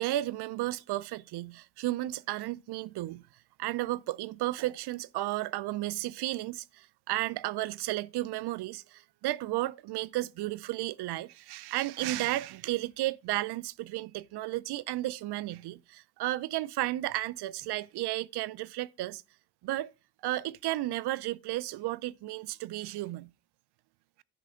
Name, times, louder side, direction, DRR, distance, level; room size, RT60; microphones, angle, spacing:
voice 1, 0.0-3.2 3.6-19.2 19.6-19.9 20.2-23.3, right 16 dB, 75° right, 0.5 m, -33 dB
10.0 x 3.3 x 6.2 m
cardioid pair, 130°, 40 cm